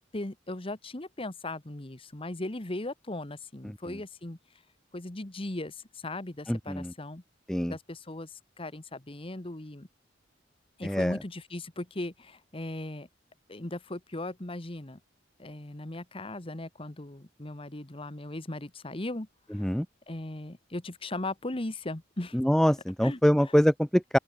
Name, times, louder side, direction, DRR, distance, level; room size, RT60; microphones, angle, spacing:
voice 1, 0.0-4.4 4.9-7.2 7.7-9.9 10.8-13.1 13.5-15.0 15.4-19.7 20.1-22.4 23.0-23.5, left 2 dB, 30° left, 1.4 m, -38 dB
voice 2, 6.5-6.9 7.5-7.7 10.8-11.2 19.6-19.9 22.3-24.2, equal, 5° left, 0.5 m, -24 dB
open air
head